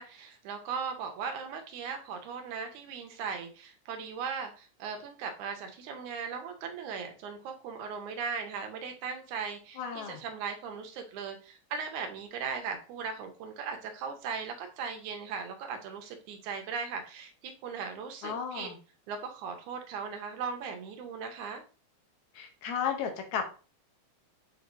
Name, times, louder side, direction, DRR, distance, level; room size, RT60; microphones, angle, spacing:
voice 1, 0.0-18.7 19.1-21.6, right 6 dB, 80° right, 5 dB, 2.2 m, -38 dB
voice 2, 9.8-10.2 18.2-18.8 22.4-23.5, left 7 dB, 75° left, 5 dB, 2.1 m, -34 dB
6.6 x 3.1 x 2.6 m, 0.35 s
omnidirectional pair, 3.5 m